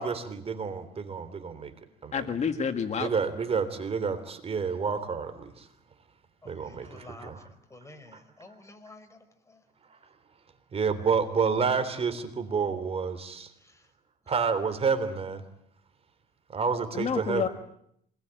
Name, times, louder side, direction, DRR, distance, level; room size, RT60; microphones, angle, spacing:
voice 1, 0.0-1.7 2.0-2.2 3.0-5.6 6.4-7.5 10.7-13.5 14.3-15.4 16.5-17.5, right 5 dB, 35° right, 11 dB, 3.4 m, -29 dB
voice 2, 2.1-3.1 16.9-17.5, left 6 dB, 40° left, 7 dB, 1.9 m, -29 dB
voice 3, 6.4-7.3 7.7-9.2, left 2 dB, 15° left, 7 dB, 4.8 m, -49 dB
26.5 x 20.5 x 9.1 m, 0.71 s
cardioid pair, 110°, 17 cm